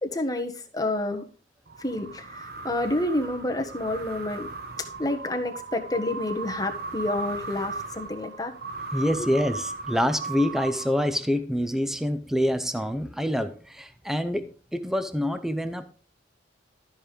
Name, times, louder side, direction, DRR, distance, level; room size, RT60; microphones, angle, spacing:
voice 1, 0.0-1.2 1.8-4.5 5.0-8.5 9.2-9.3, left 1 dB, 20° left, 4 dB, 1.5 m, -29 dB
sound 1, 1.7-11.4, right 3 dB, 55° right, 1.3 m, -37 dB
voice 2, 8.9-16.1, equal, ahead, 10 dB, 0.7 m, -26 dB
13.0 x 5.5 x 5.0 m, 0.37 s
head